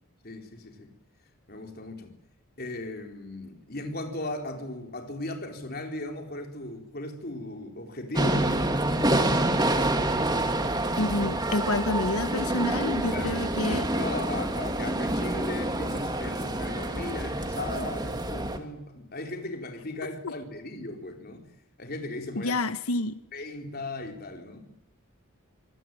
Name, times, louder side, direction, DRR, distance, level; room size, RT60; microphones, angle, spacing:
voice 1, 0.2-0.9 1.5-2.1 2.6-8.5 13.1-13.4 13.7-21.4 21.8-22.6 23.3-24.7, left 2 dB, 45° left, 4.2 m, -37 dB
sound 1, 8.1-18.6, right 1 dB, 20° right, 2.1 m, -27 dB
voice 2, 11.0-13.9 20.2-20.3 22.3-23.1, left 2 dB, 80° left, 1.1 m, -28 dB
26.5 x 19.0 x 9.3 m
head